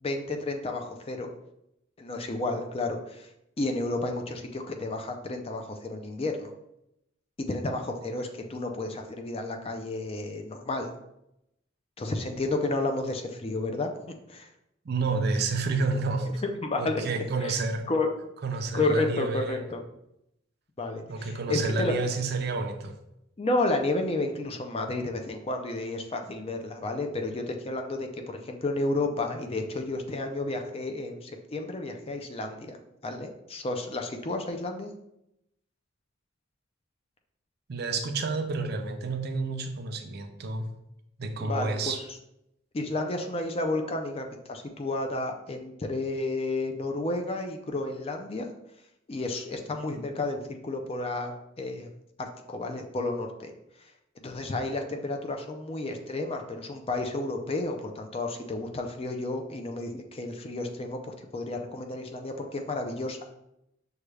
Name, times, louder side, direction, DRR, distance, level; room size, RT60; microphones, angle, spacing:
voice 1, 0.0-1.3 2.0-3.3 3.6-6.5 7.5-10.9 12.0-13.9 14.3-14.5 16.6-17.0 17.4-17.6 17.9-18.1 18.7-19.8 20.8-22.0 23.4-32.8 33.0-34.9 41.4-42.1 42.7-48.5 49.1-51.9 52.2-53.5 53.8-53.9 54.2-63.3, left 2 dB, 30° left, 4 dB, 0.4 m, -31 dB
voice 2, 14.9-16.4 16.8-17.9 18.4-19.6 21.1-23.0 37.7-40.7 41.2-42.0, right 3 dB, 55° right, 6 dB, 0.5 m, -29 dB
6.2 x 2.3 x 3.2 m, 0.83 s
head